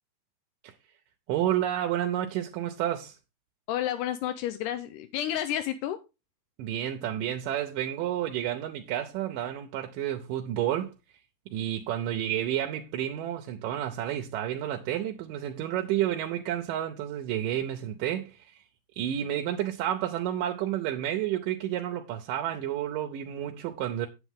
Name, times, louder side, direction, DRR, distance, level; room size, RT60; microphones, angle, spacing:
voice 1, 1.3-3.2 6.6-10.9 11.5-18.6 19.0-24.1, right 11 dB, 85° right, 2.4 m, -30 dB
voice 2, 3.7-6.0, left 11 dB, 85° left, 2.2 m, -31 dB
8.8 x 8.2 x 3.6 m
omnidirectional pair, 3.7 m